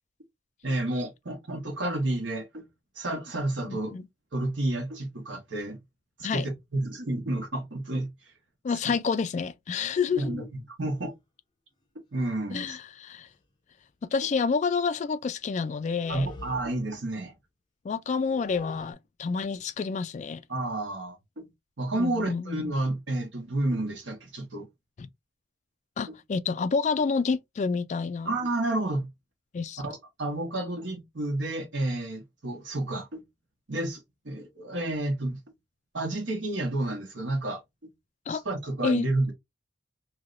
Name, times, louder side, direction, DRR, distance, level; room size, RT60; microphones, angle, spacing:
voice 1, 0.6-2.7 2.9-4.0 4.3-5.8 6.2-8.1 8.9-9.0 10.1-10.5 10.8-11.1 12.1-12.8 16.1-17.3 20.5-21.5 21.8-24.7 26.1-26.2 28.2-29.1 29.8-33.2 33.7-35.4 35.9-37.9 38.3-39.3, right 2 dB, 85° right, 1.3 m, -30 dB
voice 2, 3.6-4.1 6.2-6.5 8.6-10.5 12.5-13.3 14.1-16.3 17.8-20.4 21.9-22.7 25.0-25.1 26.0-28.3 29.5-29.8 38.3-38.4 38.8-39.1, left 5 dB, 40° left, 0.3 m, -29 dB
sound 1, 10.9-11.1 12.3-12.4 12.8-12.9 13.2-13.4 15.8-17.1 18.0-18.9, left 2 dB, 25° left, 0.8 m, -46 dB
3.2 x 2.7 x 2.5 m
head